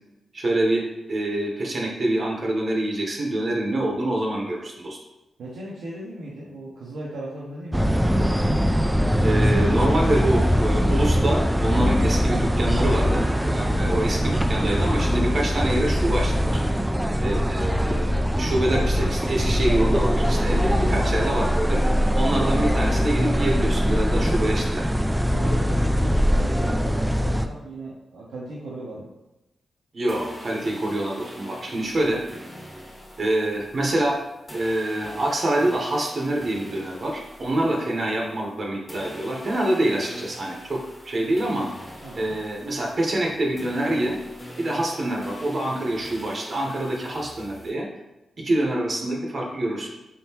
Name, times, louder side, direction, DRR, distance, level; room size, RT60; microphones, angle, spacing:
voice 1, 0.3-5.0 9.2-13.3 13.5-16.6 17.2-21.8 22.2-24.9 29.9-32.2 33.2-34.2 34.5-40.8 41.0-41.7 42.1-44.2 44.6-47.9 48.4-49.9, right 1 dB, 50° right, -1 dB, 0.8 m, -26 dB
voice 2, 5.4-8.0 13.6-13.9 20.8-21.2 25.3-29.1 42.0-42.4, right 1 dB, 90° right, -6 dB, 0.7 m, -37 dB
sound 1, 7.7-27.5, equal, 10° right, 0.3 m, -22 dB
sound 2, 30.1-38.6 38.9-47.7, equal, 20° left, 1.4 m, -43 dB
4.0 x 3.6 x 2.8 m, 1.0 s
cardioid pair, 70°, 0 cm